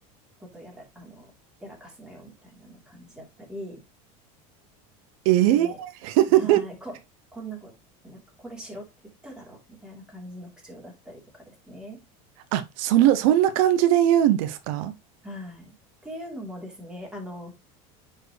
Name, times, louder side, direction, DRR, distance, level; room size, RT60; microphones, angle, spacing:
voice 1, 0.4-1.3 1.6-3.8 5.5-5.8 6.3-6.9 7.3-7.7 8.0-8.8 9.2-12.0 15.2-15.7 16.0-17.5, equal, 5° right, 3.3 m, -41 dB
voice 2, 5.2-6.6 12.5-14.9, right 12 dB, 70° right, 0.7 m, -20 dB
9.5 x 4.6 x 3.2 m
supercardioid pair, 135°, 18 cm